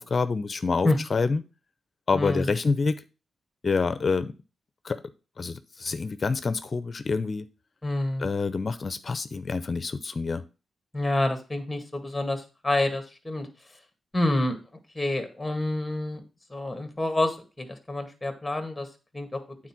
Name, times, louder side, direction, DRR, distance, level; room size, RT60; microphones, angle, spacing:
voice 1, 0.0-1.4 2.1-3.0 3.6-4.3 4.8-5.0 5.4-7.5 8.2-10.4, left 4 dB, 40° left, 12 dB, 0.7 m, -27 dB
voice 2, 2.1-2.5 7.8-8.3 10.9-13.5 14.1-14.6 14.9-16.2 16.5-18.9 19.1-19.4, left 2 dB, 10° left, 7 dB, 2.0 m, -28 dB
9.0 x 4.2 x 6.0 m, 0.31 s
cardioid pair, 95°, 0 cm